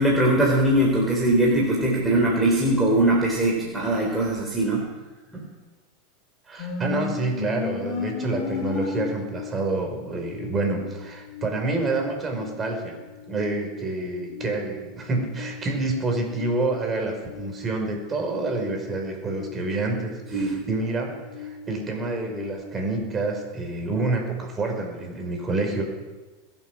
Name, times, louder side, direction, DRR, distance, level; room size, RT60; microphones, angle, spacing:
voice 1, 0.0-4.9 5.3-5.4 20.3-20.6, right 1 dB, 10° right, -3 dB, 3.5 m, -21 dB
voice 2, 6.5-12.9 13.3-25.8, right 2 dB, 25° right, 2 dB, 4.8 m, -28 dB
sound 1, 6.6-22.5, left 5 dB, 50° left, 3.6 m, -37 dB
21.5 x 8.3 x 6.2 m, 1.2 s
hypercardioid pair, 110°, 0 cm